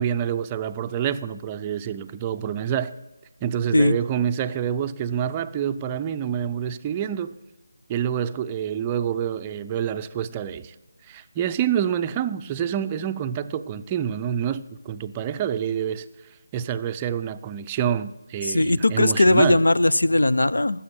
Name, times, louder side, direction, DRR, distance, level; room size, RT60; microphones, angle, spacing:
voice 1, 0.0-2.9 3.4-7.4 7.9-10.8 11.0-16.1 16.5-19.6, right 9 dB, 20° right, 0.4 m, -27 dB
voice 2, 18.4-20.8, left 2 dB, 85° left, 0.5 m, -19 dB
14.5 x 6.9 x 7.5 m
figure-of-eight pair, 165°, 0 cm